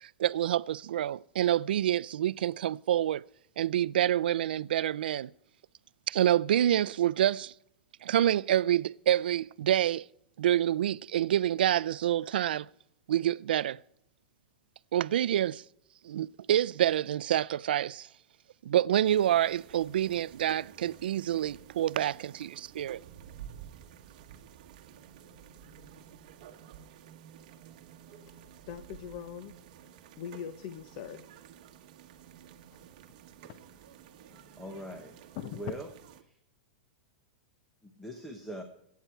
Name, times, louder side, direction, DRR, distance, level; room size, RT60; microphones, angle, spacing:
voice 1, 0.0-3.2 3.6-5.3 6.1-7.5 8.0-10.1 10.4-12.7 13.1-13.8 14.9-15.6 16.0-18.1 18.6-23.0, right 11 dB, 90° right, 0.4 m, -27 dB
sound 1, 19.0-36.2, right 9 dB, 45° right, 1.3 m, -52 dB
voice 2, 28.7-29.5 30.2-31.2 35.3-35.7, left 8 dB, 35° left, 0.9 m, -40 dB
voice 3, 34.6-35.9 36.2-36.3 37.8-38.6, right 1 dB, 5° left, 0.9 m, -42 dB
23.0 x 9.3 x 4.5 m
supercardioid pair, 175°, 5 cm